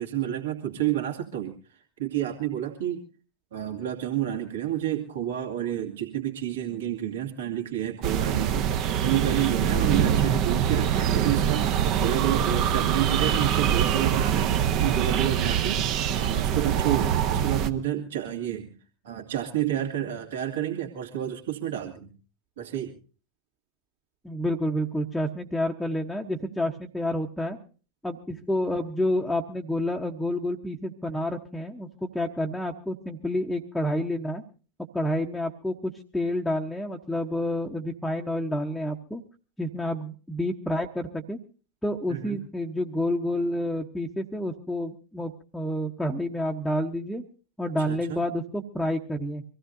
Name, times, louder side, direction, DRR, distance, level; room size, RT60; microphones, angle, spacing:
voice 1, 0.0-1.5 2.0-3.0 3.5-14.5 14.8-15.8 16.1-18.7 19.0-22.1 22.6-22.9 42.1-42.4 47.9-48.4, right 11 dB, 60° right, 0 dB, 2.3 m, -30 dB
sound 1, 8.0-17.7, right 9 dB, 40° right, 1.0 m, -24 dB
voice 2, 24.2-27.6 28.0-34.4 34.9-39.2 39.6-41.4 41.8-47.2 47.6-49.4, left 1 dB, 5° left, 0 dB, 1.0 m, -29 dB
24.5 x 16.0 x 2.7 m, 0.37 s
figure-of-eight pair, 90°, 0 cm